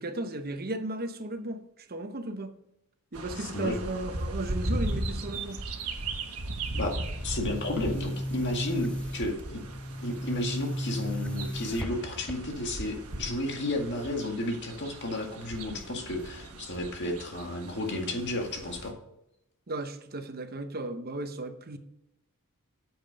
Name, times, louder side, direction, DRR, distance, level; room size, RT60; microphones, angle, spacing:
voice 1, 0.0-2.5 3.1-5.6 19.7-21.8, right 2 dB, 45° right, 8 dB, 0.9 m, -35 dB
sound 1, 3.1-18.9, right 2 dB, 70° right, 1.4 m, -38 dB
voice 2, 3.4-3.7 6.7-6.9 7.2-9.6 10.0-19.0, left 1 dB, 55° left, 2 dB, 2.0 m, -32 dB
Boom, 7.0-12.8, equal, 5° left, 0.4 m, -36 dB
9.0 x 7.3 x 5.2 m, 0.84 s
head